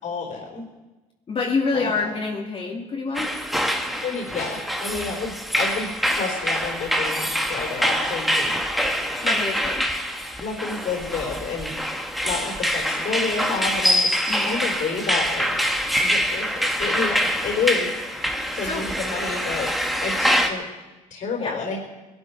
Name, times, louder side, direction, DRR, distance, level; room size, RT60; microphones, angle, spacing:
voice 1, 0.0-0.6 1.7-2.1 4.0-8.9 10.4-11.7 12.2-19.7 20.0-20.6 21.1-21.8, left 5 dB, 60° left, 0 dB, 4.2 m, -30 dB
voice 2, 1.3-3.3 9.2-9.9 14.3-14.5 18.4-18.8 21.4-21.6, left 4 dB, 40° left, -3 dB, 2.7 m, -27 dB
sound 1, 3.1-20.5, equal, ahead, 1.5 m, -25 dB
21.0 x 12.5 x 4.8 m, 1.1 s
cardioid pair, 110°, 15 cm